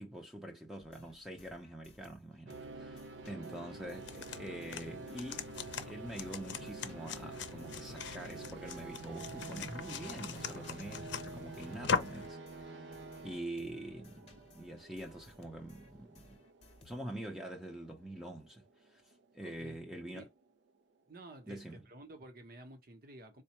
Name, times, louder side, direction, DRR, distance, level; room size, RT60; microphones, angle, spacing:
voice 1, 0.0-3.0 3.3-5.5 5.8-16.4 16.8-19.0 19.3-20.3 21.5-21.8, right 1 dB, 5° right, 0.5 m, -45 dB
sound 1, 0.8-5.9 6.2-17.3, left 2 dB, 35° left, 0.9 m, -62 dB
sound 2, 2.5-20.7, right 3 dB, 75° right, 0.5 m, -49 dB
voice 2, 3.2-3.7 19.4-19.8 20.1-20.3 21.1-23.4, right 1 dB, 55° right, 0.9 m, -52 dB
sound 3, 3.9-12.3, left 5 dB, 90° left, 0.6 m, -41 dB
4.2 x 2.2 x 2.9 m
head